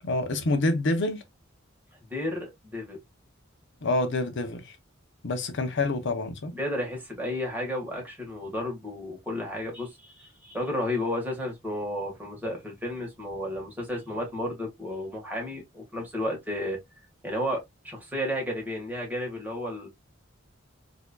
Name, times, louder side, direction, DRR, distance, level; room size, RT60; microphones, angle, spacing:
voice 1, 0.0-1.2 3.8-4.8 5.2-6.5, left 2 dB, 65° left, 0.7 m, -27 dB
voice 2, 2.1-3.0 6.5-16.8 17.2-19.9, left 1 dB, 10° right, 1.5 m, -32 dB
4.4 x 2.7 x 2.2 m
head